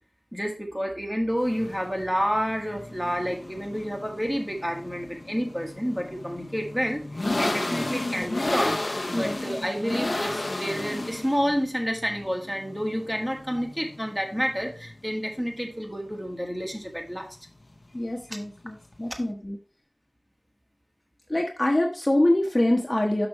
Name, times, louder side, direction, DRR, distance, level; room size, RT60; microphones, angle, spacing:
voice 1, 0.3-8.8 9.1-17.4 18.3-18.4, equal, 5° right, 3 dB, 1.7 m, -29 dB
sound 1, 1.3-19.3, left 2 dB, 55° left, 0.8 m, -33 dB
voice 2, 17.9-19.6 21.3-23.3, left 1 dB, 30° left, 1 dB, 1.1 m, -25 dB
6.1 x 6.0 x 4.2 m, 0.37 s
wide cardioid pair, 55°, 0 cm